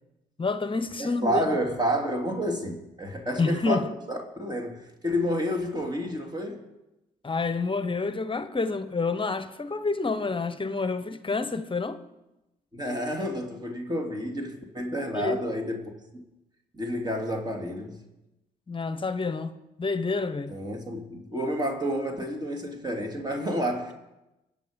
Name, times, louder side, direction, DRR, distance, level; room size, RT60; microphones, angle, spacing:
voice 1, 0.4-1.4 3.4-3.9 7.2-12.0 15.1-15.5 18.7-20.6, left 4 dB, 25° left, 1.2 m, -28 dB
voice 2, 1.0-6.6 12.7-16.2 16.7-18.0 20.5-23.9, equal, 20° right, 3.1 m, -30 dB
23.0 x 8.1 x 5.4 m
hypercardioid pair, 55°, 19 cm